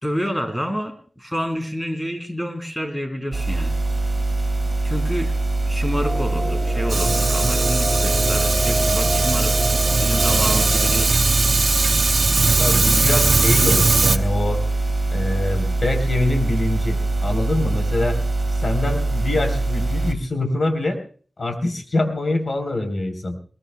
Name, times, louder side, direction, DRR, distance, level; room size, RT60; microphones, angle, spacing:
voice 1, 0.0-3.8 4.8-5.3 5.7-9.5 10.0-11.2, equal, 10° left, 5 dB, 3.3 m, -28 dB
sound 1, 3.3-20.1, right 2 dB, 40° right, 2.3 m, -23 dB
sound 2, 6.0-11.1, equal, 35° left, 5.4 m, -28 dB
Fire, 6.9-14.2, right 3 dB, 65° right, 1.0 m, -20 dB
voice 2, 12.6-14.6 15.1-18.2 18.6-21.0 21.4-23.4, left 2 dB, 60° left, 6 dB, 3.7 m, -24 dB
22.0 x 21.0 x 2.2 m, 0.42 s
wide cardioid pair, 60°, 0 cm